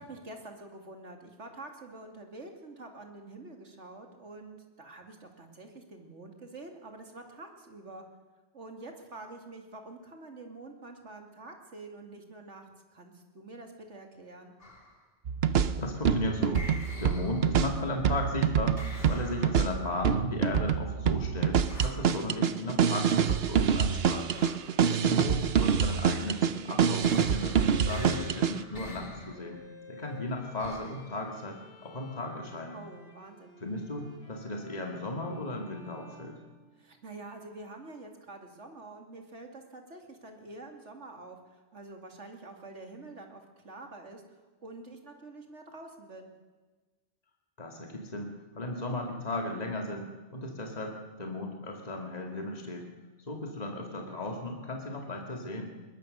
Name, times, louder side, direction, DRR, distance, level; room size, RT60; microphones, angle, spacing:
voice 1, 0.0-8.1 8.5-14.5 24.3-24.6 32.7-33.6 36.8-44.2 44.6-46.3, right 2 dB, 85° right, 4 dB, 2.9 m, -47 dB
sound 1, 14.6-15.0 16.5-17.8 18.8-19.8 21.7-22.2 24.3-24.8 27.0-29.5 30.6-31.1, left 1 dB, 55° left, 3.3 m, -45 dB
sound 2, 15.3-28.6, right 7 dB, 60° right, 1.0 m, -26 dB
voice 2, 15.5-18.8 19.1-24.3 25.0-27.6 27.9-29.6 29.9-32.8 33.6-36.4 47.6-52.9 53.3-55.7, left 2 dB, 35° left, 2 dB, 2.3 m, -36 dB
Bowed string instrument, 21.2-37.1, left 2 dB, 70° left, 6.8 m, -54 dB
21.5 x 20.0 x 6.5 m, 1.3 s
omnidirectional pair, 1.2 m